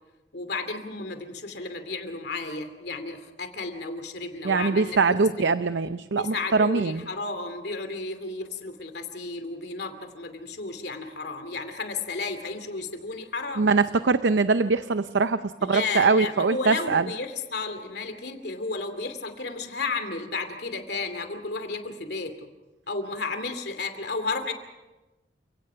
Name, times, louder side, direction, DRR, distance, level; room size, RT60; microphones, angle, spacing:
voice 1, 0.3-5.6 6.1-13.7 15.7-22.3 22.9-24.5, left 3 dB, 65° left, 8 dB, 2.6 m, -33 dB
voice 2, 4.4-7.0 13.6-17.1, right 4 dB, 80° right, 12 dB, 0.6 m, -22 dB
29.0 x 17.5 x 5.7 m, 1.1 s
head